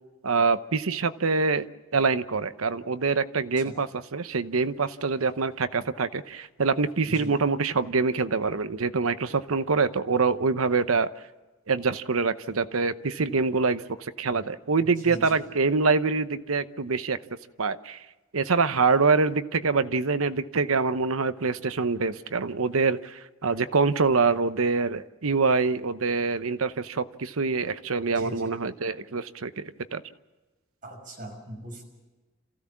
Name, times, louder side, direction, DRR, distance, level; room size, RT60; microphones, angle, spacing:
voice 1, 0.2-1.7 1.9-11.1 11.7-17.2 17.6-18.0 18.3-30.0, right 4 dB, 80° right, 12 dB, 0.9 m, -25 dB
voice 2, 28.1-28.5 30.8-31.8, right 1 dB, 40° right, 0 dB, 6.1 m, -39 dB
27.0 x 16.0 x 7.3 m, 1.2 s
head